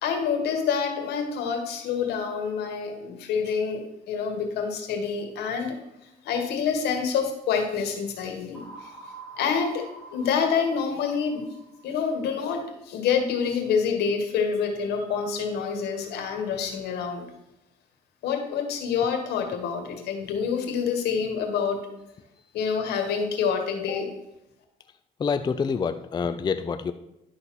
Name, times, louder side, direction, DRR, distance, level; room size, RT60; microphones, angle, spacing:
voice 1, 0.0-8.9 9.4-9.9 10.1-11.4 11.8-17.2 18.2-21.8 22.5-24.1, left 6 dB, 75° left, 4 dB, 1.8 m, -27 dB
sound 1, 8.5-12.4, right 4 dB, 10° left, 1.8 m, -45 dB
voice 2, 25.2-26.9, left 5 dB, 25° left, 9 dB, 0.4 m, -27 dB
11.0 x 4.1 x 6.0 m, 0.88 s
cardioid pair, 110°, 17 cm